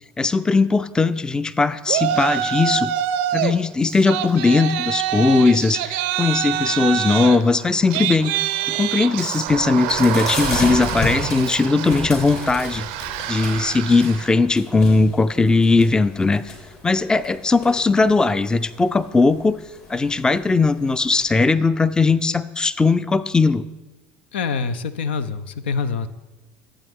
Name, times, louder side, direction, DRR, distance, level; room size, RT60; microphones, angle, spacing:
voice 1, 0.2-2.9 3.3-8.4 8.7-12.9 13.3-16.5 16.8-19.6 19.9-23.6, left 3 dB, 15° left, 15 dB, 0.4 m, -19 dB
Yell, 1.9-3.5 3.9-14.3, right 11 dB, 70° right, 0.5 m, -26 dB
sound 1, 9.5-21.3, left 3 dB, 55° left, 3.0 m, -34 dB
voice 2, 24.3-26.1, left 5 dB, 85° left, 13 dB, 0.4 m, -25 dB
12.0 x 7.8 x 3.6 m, 1.1 s
hypercardioid pair, 75°, 6 cm